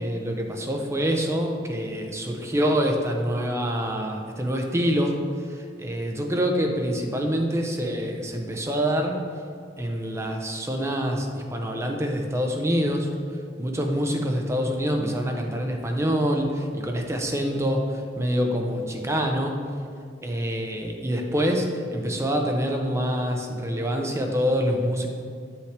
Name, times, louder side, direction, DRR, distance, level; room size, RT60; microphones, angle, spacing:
voice 1, 0.0-9.3 9.8-13.1 13.6-19.6 20.2-25.1, equal, 15° right, 2 dB, 0.7 m, -26 dB
7.5 x 5.7 x 3.3 m, 2.3 s
head